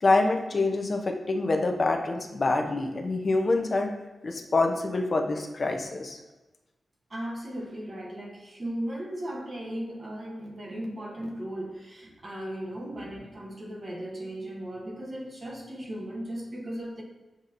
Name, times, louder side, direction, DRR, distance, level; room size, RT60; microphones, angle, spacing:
voice 1, 0.0-3.9 4.2-6.2, left 3 dB, 40° left, 3 dB, 0.5 m, -26 dB
voice 2, 7.1-17.0, right 1 dB, 30° right, -1 dB, 0.8 m, -36 dB
7.4 x 2.7 x 2.5 m, 1.1 s
wide cardioid pair, 165°, 0 cm